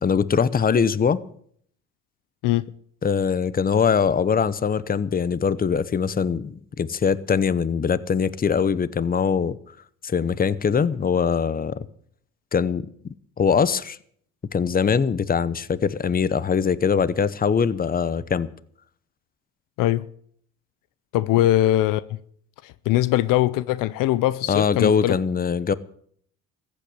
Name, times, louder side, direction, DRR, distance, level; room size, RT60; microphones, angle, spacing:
voice 1, 0.0-1.2 3.0-9.6 10.0-11.9 12.5-12.9 13.4-14.0 14.5-18.5 24.5-25.7, left 6 dB, 25° left, 0.9 m, -22 dB
voice 2, 21.1-22.2 22.6-25.2, left 14 dB, 75° left, 0.7 m, -21 dB
14.5 x 8.6 x 8.6 m
supercardioid pair, 75°, 33 cm